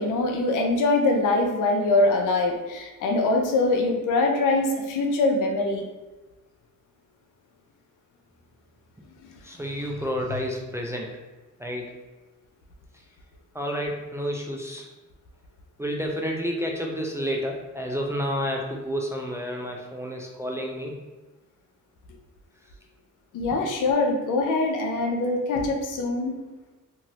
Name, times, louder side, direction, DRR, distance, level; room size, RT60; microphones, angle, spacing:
voice 1, 0.0-5.8 9.3-9.4 23.3-26.4, left 2 dB, 70° left, 2 dB, 0.6 m, -23 dB
voice 2, 9.4-11.1 11.6-11.9 13.5-14.9 15.8-21.0, equal, 10° right, -1 dB, 0.3 m, -30 dB
2.6 x 2.5 x 3.0 m, 1.2 s
cardioid pair, 90°, 32 cm